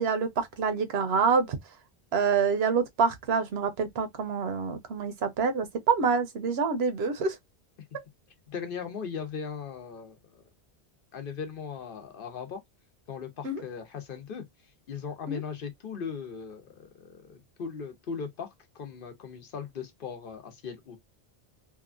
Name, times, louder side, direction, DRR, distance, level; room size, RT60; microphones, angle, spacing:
voice 1, 0.0-1.6 2.1-7.4 13.4-13.6 15.3-15.4, right 5 dB, 80° right, 0.9 m, -26 dB
voice 2, 8.5-10.4 11.1-12.6 13.1-14.5 14.9-18.5 18.7-21.0, left 6 dB, 60° left, 0.9 m, -38 dB
2.8 x 2.3 x 2.4 m
omnidirectional pair, 1.0 m